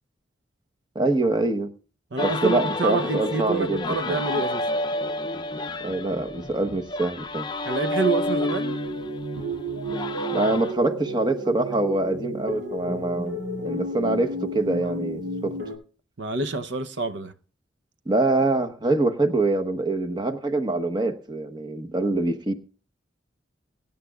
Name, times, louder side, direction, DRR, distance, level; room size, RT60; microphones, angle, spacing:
voice 1, 0.9-1.7 2.2-4.2 5.8-7.5 10.3-15.6 18.1-22.5, right 2 dB, 25° right, 1.1 m, -25 dB
voice 2, 2.1-4.7 7.7-8.8 16.2-17.3, right 3 dB, 70° right, 0.8 m, -27 dB
sound 1, 2.2-10.7, left 2 dB, 25° left, 0.6 m, -30 dB
sound 2, 8.3-15.8, right 1 dB, 90° right, 5.9 m, -32 dB
23.5 x 10.5 x 2.4 m
head